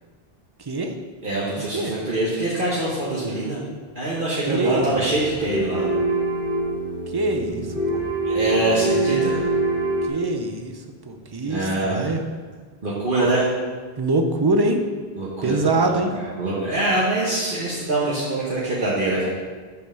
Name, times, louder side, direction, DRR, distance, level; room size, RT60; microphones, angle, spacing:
voice 1, 0.6-0.9 1.7-2.0 4.5-5.1 7.1-8.0 10.0-12.2 14.0-14.8 15.4-16.1, right 2 dB, 35° right, 4 dB, 0.4 m, -24 dB
voice 2, 1.2-3.6 3.9-5.8 8.2-9.4 11.5-12.1 12.8-13.5 15.2-19.3, right 2 dB, 55° right, -7 dB, 1.3 m, -24 dB
sound 1, 4.8-10.1, right 2 dB, 65° left, 2.0 m, -24 dB
5.5 x 4.5 x 6.3 m, 1.5 s
omnidirectional pair, 1.1 m